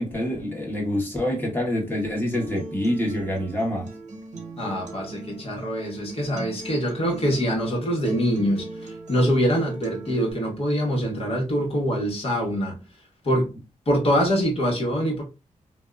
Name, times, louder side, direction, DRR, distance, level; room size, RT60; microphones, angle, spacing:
voice 1, 0.0-3.9, left 1 dB, 15° left, 1.3 m, -26 dB
Acoustic guitar, 2.3-10.3, right 2 dB, 65° right, 0.8 m, -40 dB
voice 2, 4.6-12.8 13.2-13.5 13.9-15.2, equal, 50° left, 1.2 m, -24 dB
2.7 x 2.2 x 2.3 m
cardioid pair, 80°, 13 cm